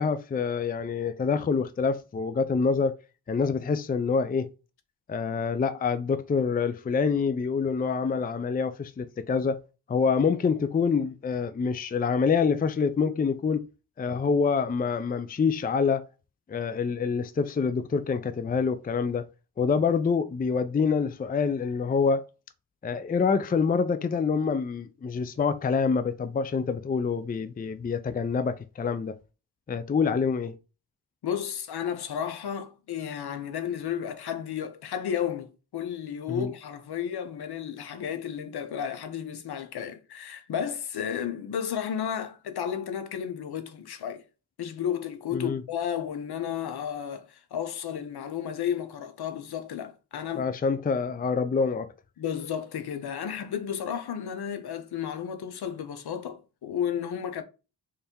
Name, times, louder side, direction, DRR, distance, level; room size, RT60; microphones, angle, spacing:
voice 1, 0.0-3.0 3.3-4.5 5.1-9.6 9.9-13.7 14.0-16.0 16.5-19.3 19.6-22.2 22.8-29.1 29.7-30.5 36.3-36.5 45.3-45.6 50.4-51.9, left 5 dB, 20° left, 0.5 m, -26 dB
voice 2, 31.2-44.2 44.6-50.5 52.2-57.4, left 8 dB, 65° left, 0.9 m, -33 dB
3.4 x 3.4 x 4.3 m
cardioid pair, 60°, 41 cm